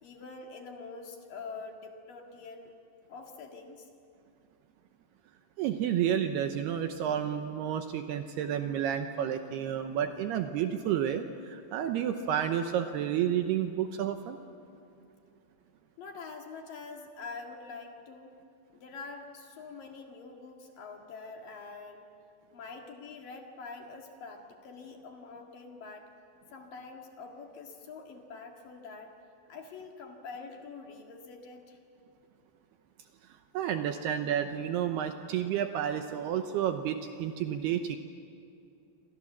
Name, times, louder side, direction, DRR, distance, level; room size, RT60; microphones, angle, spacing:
voice 1, 0.0-2.7 3.1-3.9 16.0-18.4 18.7-22.1 22.5-26.1 26.5-29.1 29.5-31.8, left 4 dB, 55° left, 2 dB, 3.2 m, -45 dB
voice 2, 5.6-14.4 33.5-38.0, right 9 dB, 75° right, 7 dB, 2.6 m, -30 dB
28.5 x 25.0 x 7.3 m, 2.6 s
omnidirectional pair, 5.4 m